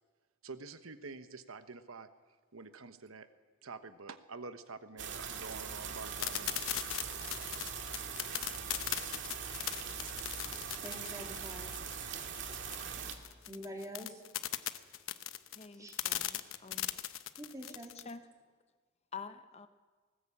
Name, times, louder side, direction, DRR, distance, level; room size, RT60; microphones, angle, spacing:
voice 1, 0.4-2.1 2.5-3.3 3.6-6.5, right 4 dB, 80° right, 10 dB, 1.1 m, -47 dB
sound 1, 5.0-13.1, right 7 dB, 60° right, 2.0 m, -41 dB
sound 2, 6.2-18.1, left 12 dB, 70° left, 1.0 m, -38 dB
voice 2, 10.8-11.7 13.5-14.2 15.7-16.6 17.4-18.0, equal, 15° right, 2 dB, 2.9 m, -47 dB
voice 3, 15.6-16.9 18.1-18.2 19.1-19.7, left 5 dB, 30° left, 10 dB, 0.8 m, -47 dB
19.5 x 19.0 x 8.5 m, 1.5 s
head